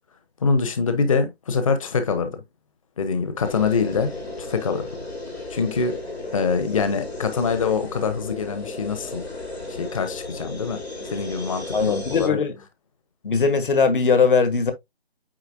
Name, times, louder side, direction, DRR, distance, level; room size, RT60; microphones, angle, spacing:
voice 1, 0.4-2.4 3.0-4.1 4.4-4.9 5.5-6.0 6.3-9.2 9.8-12.4, left 5 dB, 35° left, 1.0 m, -24 dB
sound 1, 3.4-12.3, left 2 dB, 80° left, 3.3 m, -34 dB
voice 2, 11.7-12.5 13.2-14.7, left 5 dB, 55° left, 1.4 m, -20 dB
9.0 x 4.0 x 2.6 m
figure-of-eight pair, 155°, 31 cm